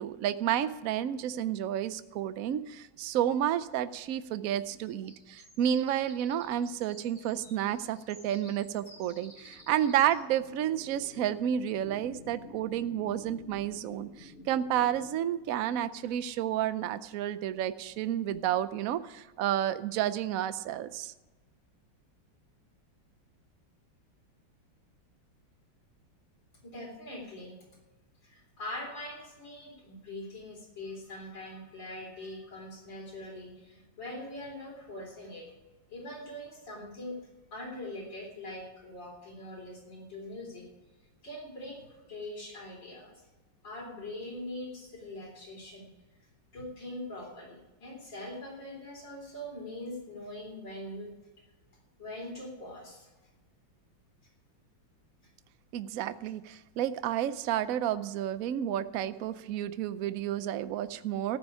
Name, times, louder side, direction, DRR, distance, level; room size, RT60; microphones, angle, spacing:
voice 1, 0.0-21.1 55.7-61.4, right 11 dB, 70° right, 13 dB, 0.8 m, -31 dB
Wren Birdsong, 4.8-10.2, equal, 25° left, 3.8 m, -55 dB
sound 1, 8.2-16.1, left 3 dB, 45° left, 0.8 m, -52 dB
voice 2, 26.6-27.6 28.2-35.5 35.9-37.2 37.5-40.7 41.2-43.1 43.6-45.9 46.5-51.1 52.0-53.1, left 1 dB, 65° left, -1 dB, 4.2 m, -42 dB
14.5 x 6.3 x 9.7 m, 1.2 s
omnidirectional pair, 2.1 m